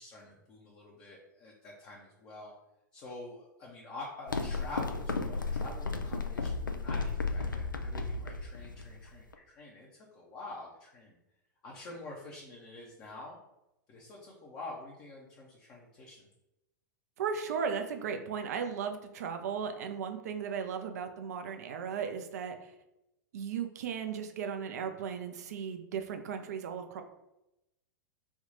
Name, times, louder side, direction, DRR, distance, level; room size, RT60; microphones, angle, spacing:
voice 1, 0.0-2.5 2.9-11.2 11.6-13.4 13.9-16.3, left 2 dB, 30° left, -3 dB, 0.7 m, -47 dB
sound 1, 4.3-9.3, left 3 dB, 80° left, 0.4 m, -34 dB
voice 2, 17.2-22.7 23.3-27.0, right 7 dB, 55° right, 6 dB, 0.5 m, -36 dB
3.5 x 2.3 x 4.0 m, 0.91 s
figure-of-eight pair, 100°, 10 cm